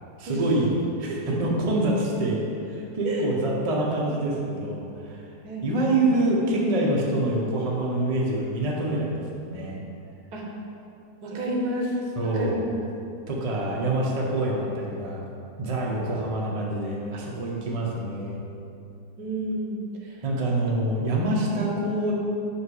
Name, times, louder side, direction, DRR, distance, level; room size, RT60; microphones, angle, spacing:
voice 1, 0.2-5.2 5.6-9.8 12.2-12.6 13.3-15.2 15.6-18.4 20.2-22.1, right 1 dB, 30° right, -3 dB, 0.7 m, -26 dB
voice 2, 5.4-6.0 10.3-10.5 11.2-12.9 19.2-20.2 21.4-21.5, right 1 dB, 70° right, -1 dB, 1.4 m, -31 dB
5.5 x 5.4 x 4.9 m, 2.6 s
omnidirectional pair, 1.8 m